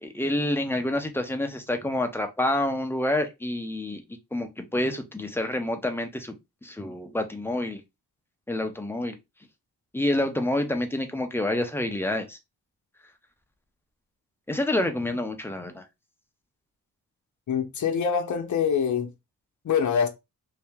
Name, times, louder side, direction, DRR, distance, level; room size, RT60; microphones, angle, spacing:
voice 1, 0.0-4.0 4.3-6.3 6.6-7.8 8.5-9.2 9.9-12.4 14.5-15.8, left 1 dB, 5° left, 0.6 m, -28 dB
voice 2, 17.5-19.1 19.6-20.1, left 7 dB, 50° left, 0.8 m, -24 dB
2.8 x 2.8 x 3.5 m
cardioid pair, 105°, 37 cm